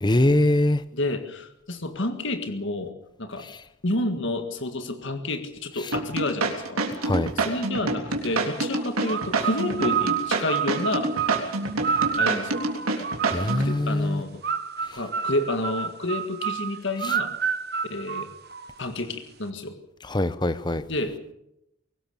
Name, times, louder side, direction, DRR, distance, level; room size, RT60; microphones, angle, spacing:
voice 1, 0.0-0.8 7.0-7.3 13.3-14.2 20.1-20.8, left 1 dB, 20° left, 14 dB, 0.8 m, -22 dB
voice 2, 0.9-2.9 3.2-3.5 3.8-6.9 7.3-11.1 12.2-12.7 13.4-14.4 14.9-17.3 17.9-18.3 18.8-19.8 20.9-21.3, left 2 dB, 55° left, 7 dB, 1.8 m, -30 dB
sound 1, 5.9-13.7, right 3 dB, 80° right, 3.5 m, -27 dB
sound 2, 9.0-13.8 14.4-18.9, right 7 dB, 45° right, 1.0 m, -29 dB
22.5 x 19.0 x 7.0 m, 0.82 s
head